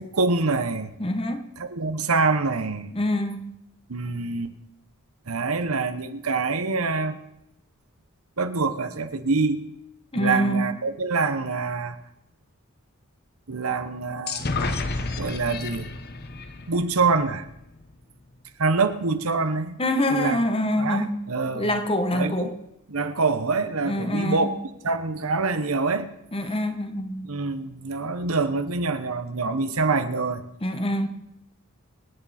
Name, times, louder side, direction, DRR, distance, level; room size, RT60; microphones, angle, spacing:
voice 1, 0.0-0.9 1.6-2.9 3.9-4.5 5.3-7.2 8.4-9.6 10.1-12.0 13.5-14.5 15.2-15.9 16.7-17.5 18.6-19.8 20.1-20.4 20.8-21.7 22.1-22.5 22.9-24.5 24.8-26.1 27.2-30.5, right 4 dB, 85° right, 1.1 m, -25 dB
voice 2, 1.0-1.5 2.9-3.5 10.1-10.6 19.8-21.1 21.5-22.5 23.8-24.5 26.3-27.3 30.6-31.1, left 1 dB, 25° left, 1.2 m, -25 dB
sound 1, 14.3-17.9, left 3 dB, 50° left, 1.0 m, -31 dB
26.0 x 8.8 x 4.3 m
head